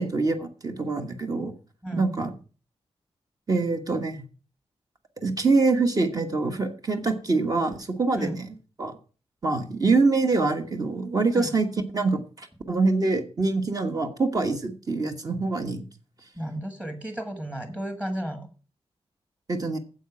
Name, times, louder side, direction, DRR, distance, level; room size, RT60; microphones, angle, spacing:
voice 1, 0.0-1.5 1.9-2.3 3.5-4.2 5.2-8.4 8.8-9.0 9.4-11.7 11.9-15.8 19.5-19.8, right 3 dB, 35° right, 5 dB, 1.3 m, -25 dB
voice 2, 16.3-18.5, equal, 10° right, 7 dB, 1.4 m, -33 dB
9.1 x 7.6 x 5.9 m, 0.37 s
wide cardioid pair, 160°, 10 cm